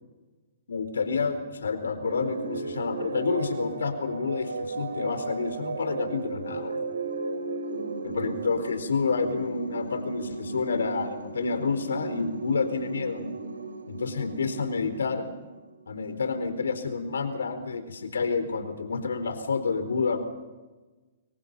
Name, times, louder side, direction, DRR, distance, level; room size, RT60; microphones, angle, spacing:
voice 1, 0.7-6.8 8.0-13.2 13.9-15.3 15.9-20.2, left 4 dB, 75° left, 9 dB, 4.3 m, -29 dB
sound 1, 2.0-15.8, right 3 dB, 85° right, 4.0 m, -35 dB
30.0 x 23.0 x 5.7 m, 1.2 s
hypercardioid pair, 125°, 0 cm